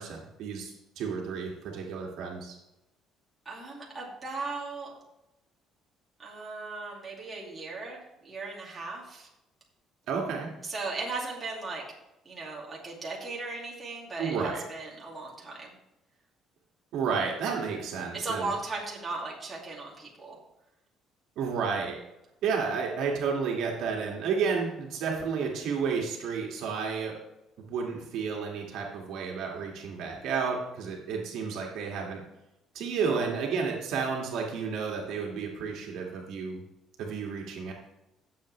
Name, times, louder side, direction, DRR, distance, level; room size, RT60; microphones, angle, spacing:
voice 1, 0.0-2.6 10.1-10.5 14.2-14.6 16.9-18.5 21.4-22.0 22.4-27.2 27.7-32.2 32.7-36.6 37.0-37.7, right 5 dB, 60° right, -1 dB, 2.0 m, -31 dB
voice 2, 3.4-4.9 6.2-9.3 10.6-11.8 12.2-15.8 18.1-20.4, right 3 dB, 15° right, -4 dB, 2.5 m, -37 dB
17.0 x 7.4 x 3.3 m, 0.92 s
cardioid pair, 180°, 0 cm